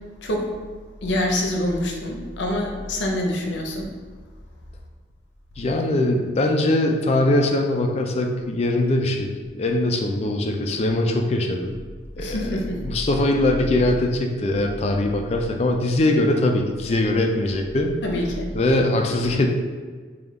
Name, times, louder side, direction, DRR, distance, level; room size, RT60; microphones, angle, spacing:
voice 1, 0.2-0.5 1.0-3.9 12.2-12.8 18.0-18.5, left 1 dB, 85° left, 1 dB, 0.6 m, -25 dB
voice 2, 5.6-11.8 12.2-17.9 18.5-19.5, left 1 dB, 35° left, 3 dB, 0.3 m, -22 dB
3.5 x 2.3 x 3.5 m, 1.5 s
head